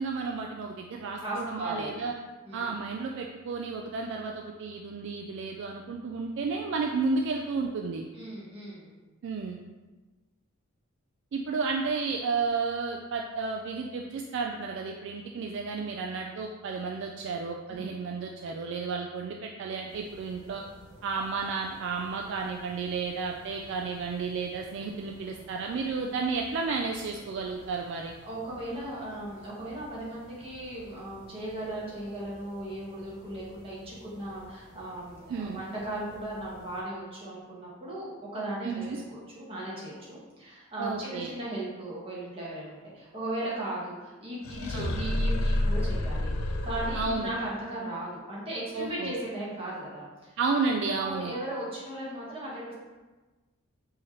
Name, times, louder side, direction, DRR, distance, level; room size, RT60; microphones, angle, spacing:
voice 1, 0.0-2.1 2.5-8.0 9.2-9.6 11.3-20.6 21.0-28.1 35.3-35.6 38.6-39.0 40.8-41.3 44.7-44.9 46.9-47.3 48.7-49.1 50.4-51.3, right 4 dB, 60° right, 2 dB, 0.3 m, -32 dB
voice 2, 1.2-2.0 2.4-2.7 8.1-8.9 17.7-17.9 28.2-50.4 50.9-52.8, right 1 dB, 30° right, -7 dB, 1.3 m, -37 dB
sound 1, 19.9-36.8, equal, 45° left, 1.1 m, -54 dB
sound 2, 44.4-47.5, left 1 dB, 85° left, 0.4 m, -29 dB
4.7 x 2.8 x 3.0 m, 1.2 s
head